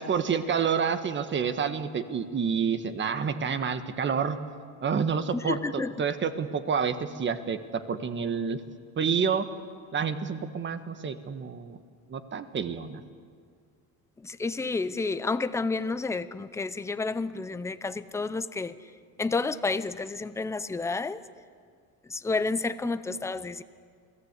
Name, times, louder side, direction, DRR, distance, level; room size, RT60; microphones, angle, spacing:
voice 1, 0.0-4.4 4.8-8.6 9.0-9.4 9.9-11.8 12.1-13.0, right 6 dB, 30° right, 10 dB, 1.5 m, -28 dB
voice 2, 5.3-5.9 14.2-18.8 19.2-21.2 22.1-23.6, left 3 dB, 10° left, 13 dB, 0.6 m, -30 dB
28.5 x 18.0 x 8.3 m, 2.1 s
cardioid pair, 130°, 38 cm